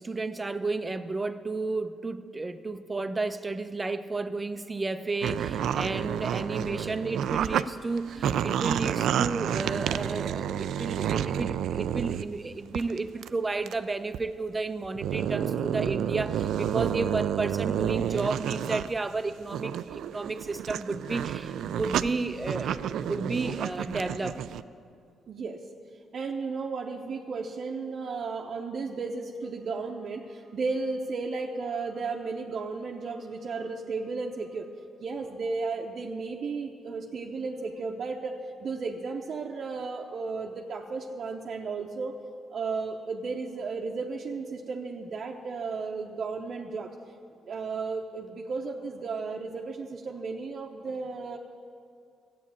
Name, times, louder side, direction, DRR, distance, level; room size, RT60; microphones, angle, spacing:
voice 1, 0.0-24.4, right 3 dB, 20° right, 10 dB, 0.7 m, -32 dB
sound 1, 5.2-7.6 8.0-12.3 12.7-13.0 13.2-13.3 13.7-13.8 14.1-14.2 14.8-18.9 19.3-24.6, right 9 dB, 75° right, 0.3 m, -30 dB
voice 2, 25.3-25.6 26.1-34.7 35.0-42.2 42.5-46.9 47.4-51.4, right 4 dB, 55° right, 0 dB, 0.8 m, -34 dB
12.5 x 8.5 x 8.7 m, 2.3 s
cardioid pair, 90°, 0 cm